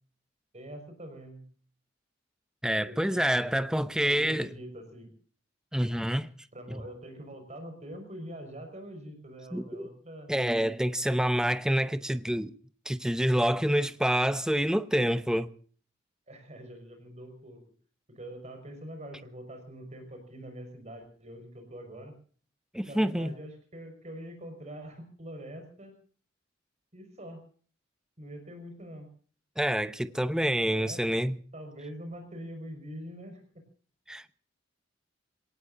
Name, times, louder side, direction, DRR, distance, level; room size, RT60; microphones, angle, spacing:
voice 1, 0.5-1.4 2.8-3.6 4.0-5.1 5.8-5.9 6.5-10.3 16.3-17.6 18.1-22.2 22.8-26.0 26.9-27.4 28.2-29.1 30.0-30.2 30.6-31.0 31.5-33.6, right 1 dB, 40° right, 5.4 m, -44 dB
voice 2, 2.6-4.5 5.7-6.3 6.7-6.8 9.5-9.9 10.3-12.6 12.9-15.5 22.7-23.3 29.6-31.4 34.1-34.2, equal, 5° right, 0.8 m, -27 dB
26.5 x 18.5 x 2.7 m
head